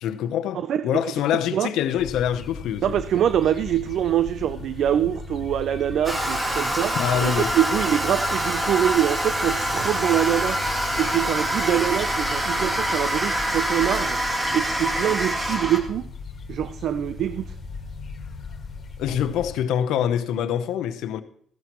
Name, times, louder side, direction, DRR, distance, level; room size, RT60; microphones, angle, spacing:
voice 1, 0.0-3.0 7.0-7.5 19.0-21.2, left 9 dB, 90° left, 0.8 m, -25 dB
sound 1, 2.0-19.6, left 5 dB, 55° left, 1.8 m, -38 dB
voice 2, 2.8-10.6 11.0-14.2 14.5-16.1 16.5-17.5, right 10 dB, 75° right, 0.4 m, -24 dB
Toilet flush, 6.0-15.8, right 1 dB, 20° right, 2.5 m, -25 dB
15.5 x 13.0 x 3.0 m
cardioid pair, 90°, 0 cm